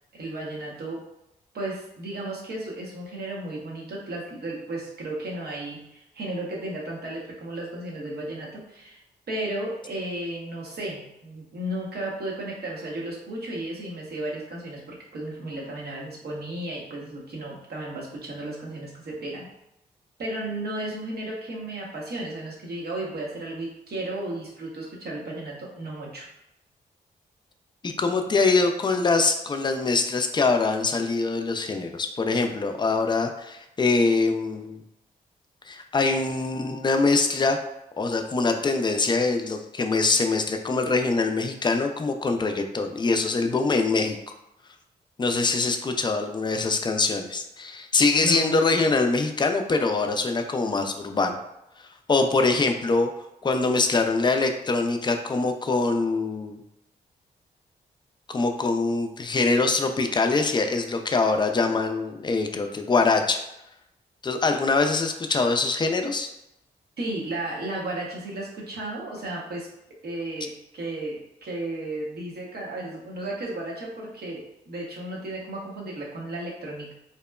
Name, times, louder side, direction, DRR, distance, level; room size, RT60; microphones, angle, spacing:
voice 1, 0.1-1.0 1.5-9.0 9.3-19.5 20.2-26.3 48.2-48.6 67.0-69.7 70.0-76.9, right 1 dB, 60° right, -3 dB, 0.9 m, -34 dB
voice 2, 27.8-34.8 35.7-37.6 38.0-44.2 45.2-51.4 52.1-53.1 53.4-56.6 58.3-63.4 64.2-66.3, left 3 dB, 25° left, 6 dB, 0.4 m, -23 dB
2.8 x 2.1 x 2.2 m, 0.85 s
supercardioid pair, 45°, 18 cm